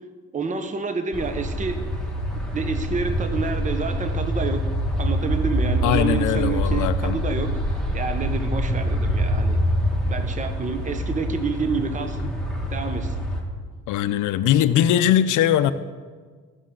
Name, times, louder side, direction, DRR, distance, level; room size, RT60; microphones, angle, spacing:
voice 1, 0.3-1.9 2.3-4.6 5.0-9.6 10.0-12.3 12.7-13.1, right 4 dB, 25° right, 7 dB, 0.8 m, -28 dB
sound 1, 1.1-13.4, equal, ahead, 1.9 m, -25 dB
voice 2, 5.8-7.2 13.9-15.7, left 11 dB, 80° left, 13 dB, 0.5 m, -20 dB
15.0 x 6.6 x 3.8 m, 1.5 s
cardioid pair, 90°, 30 cm